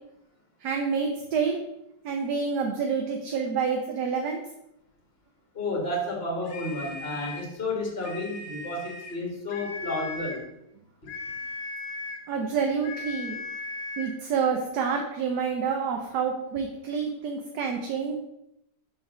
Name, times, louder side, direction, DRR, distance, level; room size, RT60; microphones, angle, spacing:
voice 1, 0.6-1.6 2.0-4.4 12.3-13.4 14.0-18.2, right 6 dB, 70° right, 3 dB, 1.3 m, -28 dB
voice 2, 5.5-10.4, left 2 dB, 35° left, -1 dB, 2.1 m, -31 dB
sound 1, 6.4-7.5 8.0-9.2 9.5-10.5 11.1-12.3 12.8-14.2, left 3 dB, 75° left, 1.8 m, -38 dB
6.0 x 4.6 x 6.2 m, 0.84 s
omnidirectional pair, 1.9 m